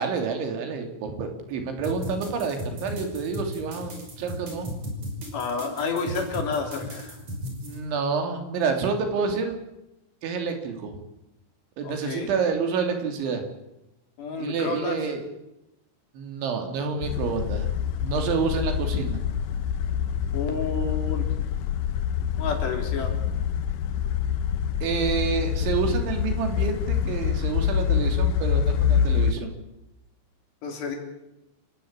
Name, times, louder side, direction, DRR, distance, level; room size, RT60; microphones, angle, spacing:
voice 1, 0.0-3.9 4.2-4.7 7.6-9.6 10.2-11.0 11.8-13.4 14.4-15.2 16.2-17.7 18.0-19.2 24.8-29.5, right 5 dB, 80° right, 5 dB, 5.2 m, -28 dB
sound 1, 1.8-7.8, equal, 35° right, 6.8 m, -35 dB
voice 2, 5.3-7.2 11.8-12.3 14.2-15.0 20.3-21.3 22.4-23.1 30.6-31.0, left 4 dB, 65° left, 3 dB, 5.8 m, -30 dB
sound 2, 17.0-29.3, left 8 dB, 90° left, 1.8 m, -26 dB
28.5 x 16.5 x 8.8 m, 0.91 s
omnidirectional pair, 5.3 m